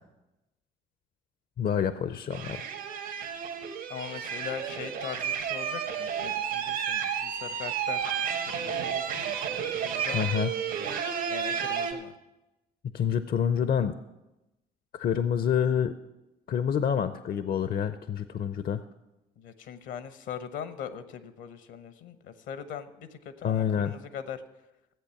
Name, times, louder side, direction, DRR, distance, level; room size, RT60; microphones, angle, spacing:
voice 1, 1.6-2.6 10.1-10.5 12.9-13.9 14.9-16.0 16.5-18.8 23.4-23.9, left 8 dB, 45° left, 12 dB, 0.6 m, -27 dB
sound 1, 2.3-11.9, right 8 dB, 75° right, 1.6 m, -32 dB
voice 2, 3.9-8.0 8.5-10.2 11.3-12.1 19.4-24.4, left 8 dB, 70° left, 12 dB, 1.0 m, -41 dB
14.0 x 8.1 x 5.8 m, 0.99 s
hypercardioid pair, 55°, 20 cm